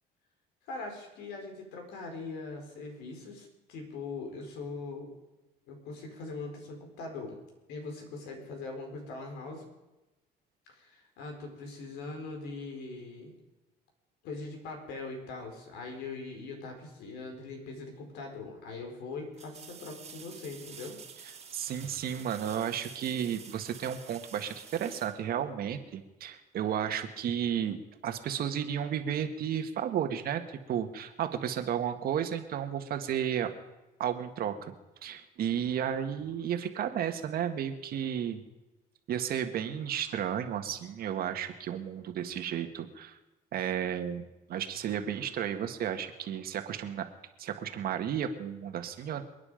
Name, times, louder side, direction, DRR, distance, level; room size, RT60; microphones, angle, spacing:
voice 1, 0.7-5.1 5.7-7.4 7.7-9.6 10.7-13.3 14.2-21.0, left 3 dB, 90° left, 3 dB, 4.9 m, -41 dB
sound 1, 18.0-18.1 19.3-25.9 28.8-28.9, right 6 dB, 40° right, 2.2 m, -50 dB
voice 2, 21.5-27.8 28.0-33.5 34.0-34.7 35.0-38.4 39.1-43.2 43.5-47.1 47.4-49.2, right 9 dB, 60° right, 7 dB, 1.8 m, -33 dB
28.0 x 9.7 x 5.2 m, 1.0 s
cardioid pair, 110°, 17 cm